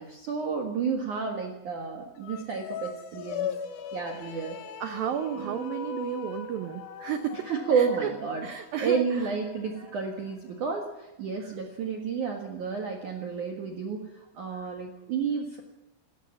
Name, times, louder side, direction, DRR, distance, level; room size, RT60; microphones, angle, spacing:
voice 1, 0.0-3.5 3.9-4.6 5.4-5.6 7.5-8.5 8.8-15.6, right 5 dB, 55° right, 2 dB, 2.5 m, -31 dB
sound 1, 2.2-10.7, left 7 dB, 90° left, 1.7 m, -40 dB
voice 2, 4.8-7.5 7.8-8.1 8.4-9.0 14.5-14.7, right 9 dB, 85° right, 9 dB, 2.0 m, -33 dB
28.0 x 14.0 x 7.3 m, 0.99 s
omnidirectional pair, 5.5 m